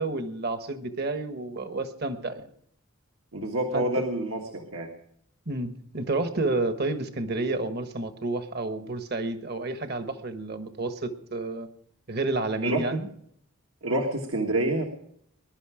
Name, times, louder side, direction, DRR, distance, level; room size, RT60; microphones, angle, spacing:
voice 1, 0.0-2.5 3.7-4.0 5.5-11.7 12.1-13.1, right 2 dB, 45° right, 9 dB, 1.3 m, -30 dB
voice 2, 3.3-4.9 12.6-12.8 13.8-14.8, right 1 dB, 70° right, 3 dB, 1.6 m, -27 dB
21.0 x 11.5 x 5.0 m, 0.68 s
head